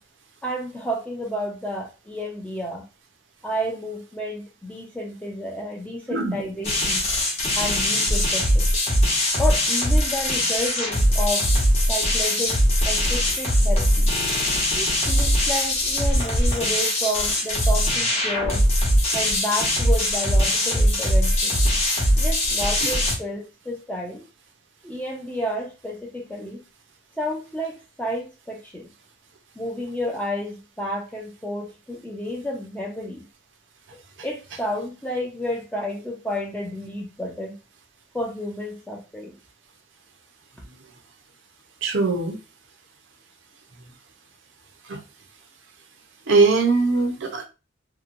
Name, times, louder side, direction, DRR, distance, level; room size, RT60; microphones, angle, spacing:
voice 1, 0.4-2.8 3.4-7.0 7.6-8.7 9.4-11.5 11.9-12.6 12.8-14.1 14.7-18.6 19.1-21.6 22.2-24.2 24.8-26.6 27.2-28.9 29.6-33.3 34.2-37.6 38.1-39.3, left 1 dB, 5° left, -2 dB, 0.5 m, -31 dB
sound 1, 6.6-23.2, equal, 30° left, 0.9 m, -21 dB
voice 2, 41.8-42.4 44.9-45.0 46.3-47.4, right 3 dB, 60° right, 3 dB, 0.6 m, -21 dB
2.8 x 2.2 x 2.5 m, 0.29 s
head